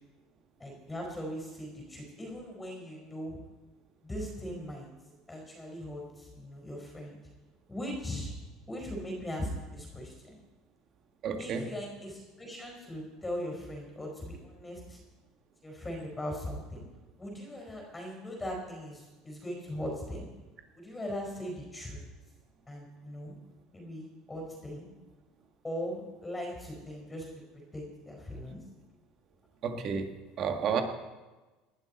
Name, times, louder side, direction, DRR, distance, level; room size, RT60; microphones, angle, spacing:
voice 1, 0.6-3.4 4.0-4.9 5.3-7.2 7.7-8.3 8.7-10.4 11.4-15.0 15.6-16.8 17.2-20.3 20.7-22.0 22.7-23.3 23.7-24.9 25.6-27.3 27.5-28.6, equal, 10° left, 0 dB, 4.8 m, -39 dB
voice 2, 11.2-11.7 29.6-30.1 30.4-30.8, right 6 dB, 45° right, 5 dB, 1.8 m, -30 dB
19.5 x 12.0 x 4.3 m, 1.2 s
supercardioid pair, 120°, 0 cm